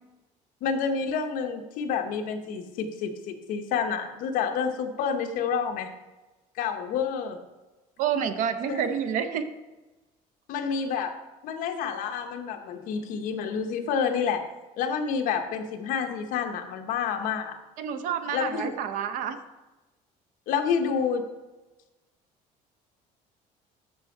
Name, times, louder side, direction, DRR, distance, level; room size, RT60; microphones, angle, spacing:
voice 1, 0.6-5.9 6.6-7.4 8.7-8.8 10.5-11.1 11.4-14.4 14.8-17.6 18.3-18.7 20.5-21.2, left 6 dB, 60° left, 6 dB, 0.9 m, -29 dB
voice 2, 8.0-9.5 17.8-19.4, right 8 dB, 55° right, 9 dB, 0.6 m, -28 dB
8.2 x 6.5 x 4.4 m, 1.1 s
cardioid pair, 175°, 16 cm